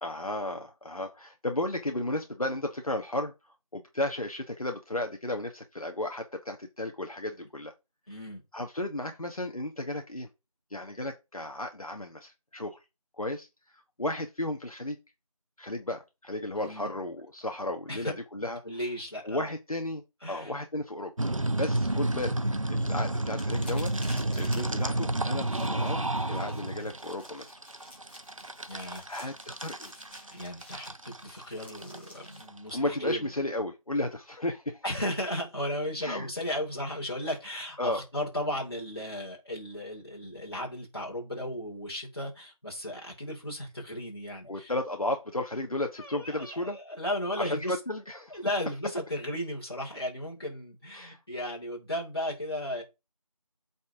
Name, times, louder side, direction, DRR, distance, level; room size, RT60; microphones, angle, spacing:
voice 1, 0.0-7.7 8.5-10.3 10.7-12.8 13.2-15.0 15.6-18.6 19.2-20.0 20.3-21.1 21.5-22.4 22.7-23.9 24.3-27.6 29.1-29.9 32.7-34.8 36.0-36.3 37.8-38.0 44.5-46.8 47.4-48.4 50.9-51.2, left 1 dB, 70° left, 1.3 m, -34 dB
voice 2, 8.1-8.4 16.6-16.9 17.9-18.1 18.6-19.5 20.2-20.5 21.9-22.1 28.7-29.3 30.3-33.3 34.8-44.7 46.0-47.8 48.3-52.8, left 1 dB, 45° left, 3.1 m, -35 dB
sound 1, 21.2-32.7, right 1 dB, 60° right, 0.8 m, -31 dB
sound 2, 23.3-32.4, left 1 dB, 20° left, 2.6 m, -52 dB
8.6 x 4.3 x 3.7 m
figure-of-eight pair, 180°, 19 cm